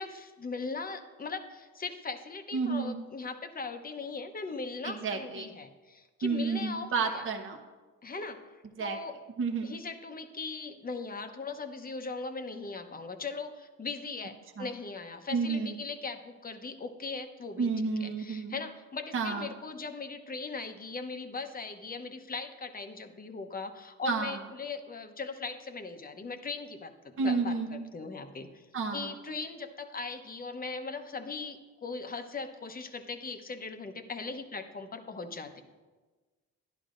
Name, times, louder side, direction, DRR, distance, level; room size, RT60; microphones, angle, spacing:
voice 1, 0.0-7.2 8.0-9.1 9.6-17.7 18.0-28.7 28.9-35.6, left 4 dB, 30° left, 7 dB, 0.9 m, -39 dB
voice 2, 2.5-2.9 4.8-5.5 6.2-7.6 8.8-9.0 9.4-9.7 14.6-14.7 15.3-15.7 17.6-18.6 19.1-19.5 24.1-24.4 27.2-27.8 28.7-29.1, right 4 dB, 45° right, 3 dB, 1.0 m, -30 dB
11.5 x 11.0 x 2.5 m, 1.3 s
cardioid pair, 90°, 30 cm